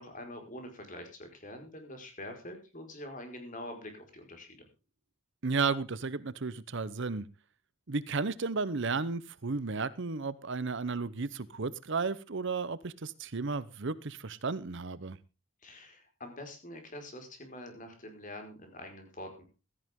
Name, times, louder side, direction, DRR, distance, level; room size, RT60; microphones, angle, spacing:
voice 1, 0.0-4.6 15.6-19.4, left 1 dB, 40° left, 4 dB, 4.9 m, -45 dB
voice 2, 5.4-7.3 7.9-15.2, right 4 dB, 55° right, 17 dB, 0.8 m, -33 dB
16.0 x 14.0 x 3.7 m, 0.32 s
head